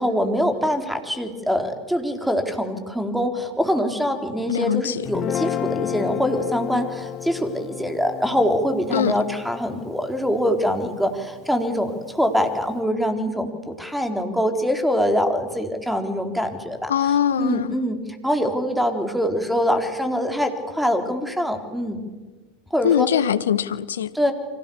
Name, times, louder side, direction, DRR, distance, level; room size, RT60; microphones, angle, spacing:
voice 1, 0.0-22.0 22.7-23.1 24.1-24.3, equal, ahead, 4.0 m, -24 dB
voice 2, 4.5-5.1 8.9-9.1 16.9-17.8 22.8-24.1, left 9 dB, 75° left, 1.1 m, -22 dB
Guitar, 5.0-11.4, left 11 dB, 40° left, 1.2 m, -32 dB
30.0 x 25.0 x 7.1 m
figure-of-eight pair, 80°, 0 cm